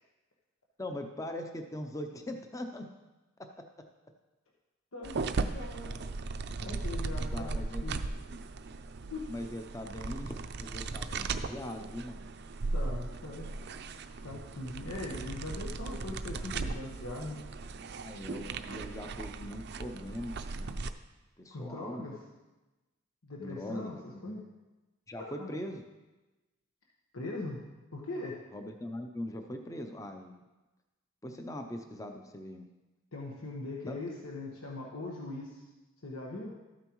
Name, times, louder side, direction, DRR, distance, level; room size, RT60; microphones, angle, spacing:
voice 1, 0.8-2.9 3.4-3.7 5.1-5.2 7.3-7.8 9.3-12.3 17.9-20.8 21.4-22.2 23.4-24.4 25.1-25.8 28.5-30.4 31.2-32.7 33.9-34.0, left 1 dB, 15° left, 5 dB, 0.6 m, -41 dB
voice 2, 4.9-6.0 6.6-8.0 9.1-9.3 12.7-13.5 14.2-17.4 21.5-22.2 23.2-24.4 25.3-25.5 27.1-27.6 27.9-28.4 33.1-35.6 36.0-36.5, left 2 dB, 90° left, -2 dB, 1.3 m, -40 dB
sound 1, 5.0-20.9, right 3 dB, 55° right, 0.5 m, -37 dB
13.5 x 9.0 x 3.1 m, 1.1 s
head